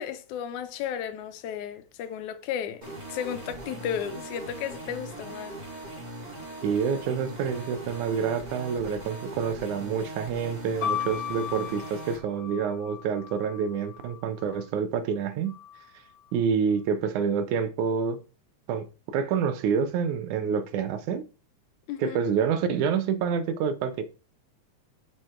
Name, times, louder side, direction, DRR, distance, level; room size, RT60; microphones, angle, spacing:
voice 1, 0.0-2.8 3.1-5.6 21.9-22.2, left 9 dB, 80° left, 2.2 m, -34 dB
sound 1, 2.8-12.2, right 1 dB, 15° right, 2.1 m, -40 dB
voice 2, 6.6-15.6 16.3-18.2 18.7-21.2 22.0-24.0, right 6 dB, 85° right, 2.4 m, -27 dB
sound 2, 10.8-14.6 15.5-16.2, left 9 dB, 40° left, 1.4 m, -36 dB
6.4 x 6.2 x 4.4 m
omnidirectional pair, 3.4 m